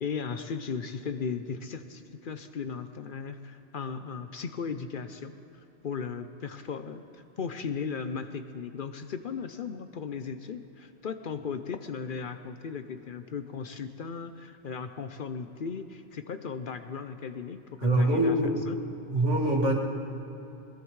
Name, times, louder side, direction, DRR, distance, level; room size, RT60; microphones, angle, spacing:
voice 1, 0.0-18.4 18.7-18.8, left 6 dB, 55° left, 9 dB, 0.7 m, -36 dB
voice 2, 17.8-18.7 19.1-19.7, right 1 dB, 85° right, 0 dB, 2.4 m, -24 dB
21.0 x 21.0 x 3.2 m, 2.9 s
omnidirectional pair, 1.2 m